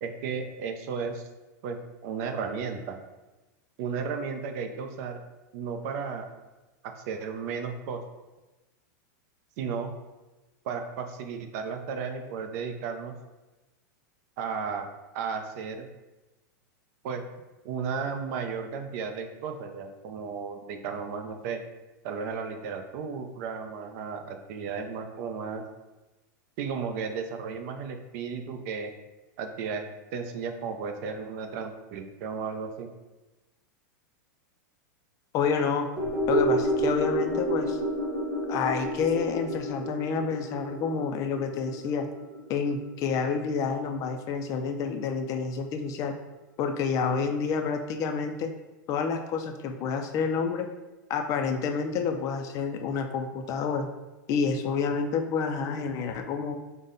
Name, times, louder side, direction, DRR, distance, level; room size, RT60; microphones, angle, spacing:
voice 1, 0.0-1.2 1.6-3.0 3.8-5.2 5.5-6.3 6.8-8.0 9.6-9.9 10.6-13.2 14.4-15.9 17.0-17.2 17.6-21.6 22.0-25.6 26.6-28.9 29.4-29.9 30.1-32.9, right 5 dB, 50° right, 6 dB, 0.5 m, -34 dB
voice 2, 35.3-35.9 36.3-37.8 38.5-42.1 42.5-46.2 46.6-48.5 48.9-50.7 51.1-53.9 54.3-56.6, left 5 dB, 30° left, 6 dB, 0.4 m, -29 dB
sound 1, 36.0-44.4 44.7-44.8, right 1 dB, ahead, 1.1 m, -30 dB
5.3 x 2.1 x 3.8 m, 1.1 s
supercardioid pair, 145°, 11 cm